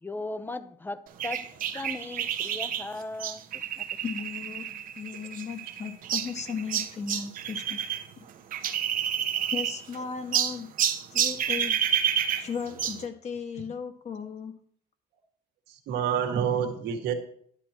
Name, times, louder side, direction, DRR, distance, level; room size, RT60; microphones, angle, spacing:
voice 1, 0.0-4.0, left 2 dB, 10° left, 0.7 m, -38 dB
sound 1, 1.2-8.0 8.3-10.0 10.3-13.0, right 9 dB, 55° right, 1.0 m, -29 dB
voice 2, 4.0-4.7 5.0-7.8 9.5-10.7 11.1-11.8 12.4-14.6, left 6 dB, 40° left, 1.7 m, -36 dB
voice 3, 15.7-17.1, right 8 dB, 85° right, 1.9 m, -28 dB
12.0 x 10.5 x 3.0 m
cardioid pair, 110°, 17 cm